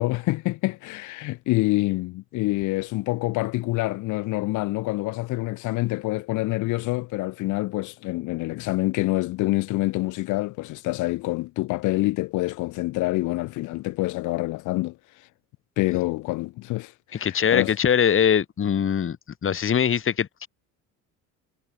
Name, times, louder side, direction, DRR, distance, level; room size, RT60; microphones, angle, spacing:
voice 1, 0.0-15.0 15.8-17.7, left 20 dB, 85° left, 4.2 m, -26 dB
voice 2, 17.2-19.2 19.4-20.5, left 8 dB, 45° left, 6.1 m, -22 dB
cardioid pair, 100°, 30 cm